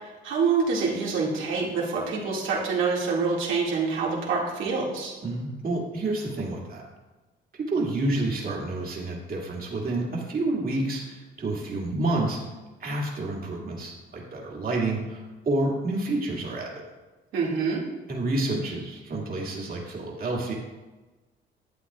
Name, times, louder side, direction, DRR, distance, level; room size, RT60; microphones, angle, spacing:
voice 1, 0.0-5.1 17.3-17.8, right 4 dB, 80° right, -3 dB, 2.2 m, -26 dB
voice 2, 5.2-6.8 7.7-12.4 12.8-16.7 18.1-20.5, right 2 dB, 45° right, -2 dB, 2.2 m, -29 dB
11.5 x 8.5 x 2.4 m, 1.2 s
cardioid pair, 90°, 20 cm